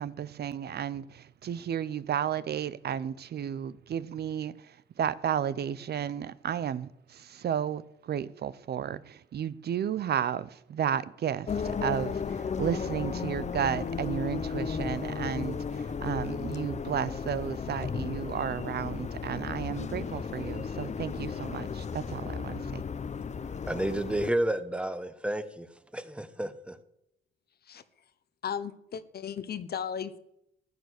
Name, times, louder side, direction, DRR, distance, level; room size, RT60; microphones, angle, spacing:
voice 1, 0.0-22.8, right 9 dB, 55° right, 0.7 m, -33 dB
sound 1, 11.5-24.3, left 6 dB, 35° left, 0.9 m, -34 dB
voice 2, 23.4-26.8, right 1 dB, 5° right, 1.2 m, -31 dB
voice 3, 28.4-30.2, left 8 dB, 55° left, 1.1 m, -35 dB
15.0 x 9.6 x 6.5 m
cardioid pair, 90°, 20 cm